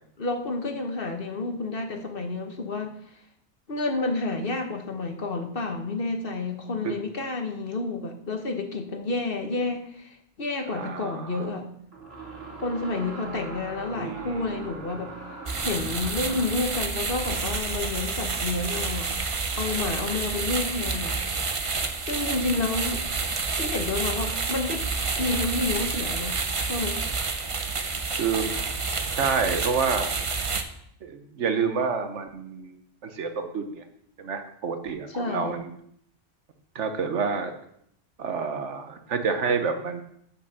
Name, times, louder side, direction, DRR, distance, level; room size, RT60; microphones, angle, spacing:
voice 1, 0.2-3.0 3.7-11.7 12.6-15.1 15.6-19.1 19.6-21.2 21.5-21.7 22.0-23.0 23.5-24.9 25.2-26.4 26.7-27.0 35.1-35.6, left 3 dB, 50° left, 5 dB, 1.4 m, -30 dB
sound 1, 10.0-10.1 11.9-16.8, right 2 dB, 60° right, 3.3 m, -41 dB
voice 2, 10.7-11.5 13.9-14.5 28.2-28.4 29.2-30.1 31.0-33.8 34.2-35.7 36.7-37.5 38.2-40.0, right 5 dB, 80° right, 7 dB, 1.3 m, -28 dB
sound 2, 15.5-30.6, right 4 dB, 35° right, 0.7 m, -29 dB
8.0 x 5.9 x 6.8 m, 0.71 s
omnidirectional pair, 1.2 m